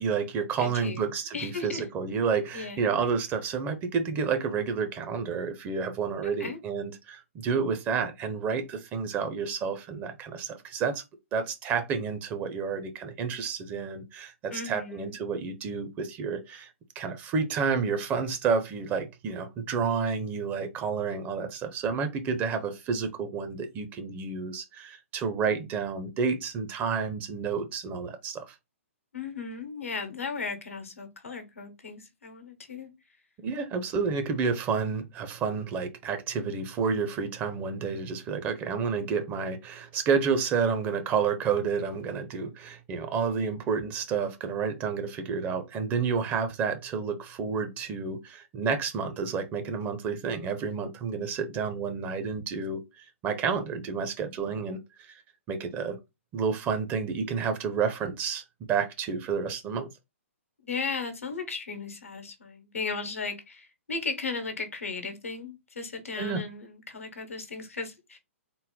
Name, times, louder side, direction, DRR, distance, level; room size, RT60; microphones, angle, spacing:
voice 1, 0.0-11.0 11.3-16.7 17.0-28.5 33.4-54.8 55.1-55.2 55.5-56.0 56.3-59.9 66.2-66.4, right 5 dB, 25° right, 0.7 m, -30 dB
voice 2, 0.6-1.8 2.5-3.0 6.2-6.6 14.5-15.2 29.1-32.9 60.6-68.2, left 4 dB, 80° left, 1.0 m, -36 dB
3.8 x 2.1 x 3.7 m
figure-of-eight pair, 120°, 7 cm